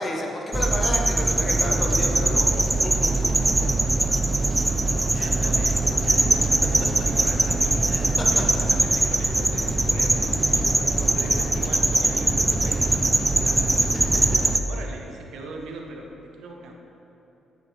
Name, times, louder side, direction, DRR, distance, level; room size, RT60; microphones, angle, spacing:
voice 1, 0.0-2.5 2.8-2.9 3.6-3.7 5.1-5.5 6.0-6.2 7.9-8.3 10.5-10.6 13.9-14.2, left 1 dB, 35° left, 0 dB, 0.8 m, -31 dB
sound 1, 0.5-14.6, right 2 dB, 15° right, 0.4 m, -22 dB
voice 2, 5.2-7.8 8.3-13.6 14.2-16.7, right 2 dB, 85° right, 1 dB, 0.8 m, -40 dB
sound 2, 8.2-13.6, equal, 85° left, 1.4 m, -41 dB
8.6 x 5.2 x 3.2 m, 3.0 s
cardioid pair, 90°, 0 cm